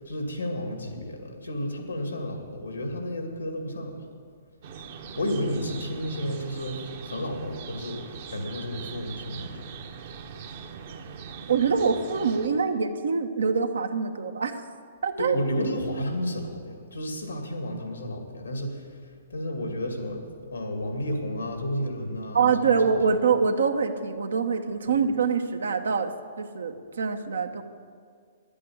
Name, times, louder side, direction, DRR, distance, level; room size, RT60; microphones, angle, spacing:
voice 1, 0.0-4.1 5.2-9.6 15.2-20.2 20.5-23.1 24.9-25.0, equal, 90° left, 4 dB, 2.2 m, -32 dB
sound 1, 4.6-12.5, right 6 dB, 50° right, 1.1 m, -41 dB
voice 2, 11.5-14.6 15.0-15.4 22.3-27.6, right 5 dB, 75° right, 7 dB, 1.0 m, -25 dB
11.0 x 8.5 x 8.5 m, 2.1 s
hypercardioid pair, 125°, 0 cm